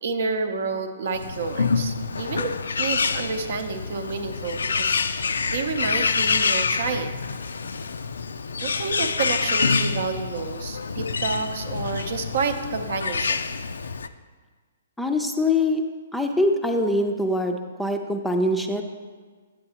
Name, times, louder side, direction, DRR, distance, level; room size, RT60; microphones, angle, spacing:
voice 1, 0.0-7.3 8.6-13.4, right 4 dB, 60° right, 7 dB, 0.7 m, -29 dB
Bird, 1.1-14.1, left 5 dB, 75° left, 0.3 m, -27 dB
voice 2, 15.0-15.8 16.1-18.8, left 1 dB, 5° left, 4 dB, 0.5 m, -23 dB
8.6 x 7.7 x 2.9 m, 1.5 s
figure-of-eight pair, 125°, 0 cm